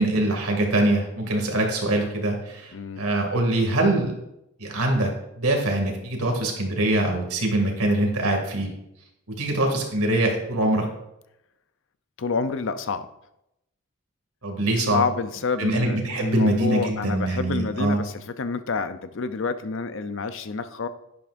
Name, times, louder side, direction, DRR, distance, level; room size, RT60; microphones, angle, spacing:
voice 1, 0.0-4.1 4.6-5.1 5.4-8.7 9.4-10.9 14.4-15.0 15.6-18.0, right 1 dB, 80° right, 2 dB, 2.4 m, -23 dB
voice 2, 12.2-13.1 14.8-20.9, left 4 dB, 60° left, 11 dB, 0.6 m, -28 dB
11.0 x 10.5 x 2.6 m, 0.85 s
head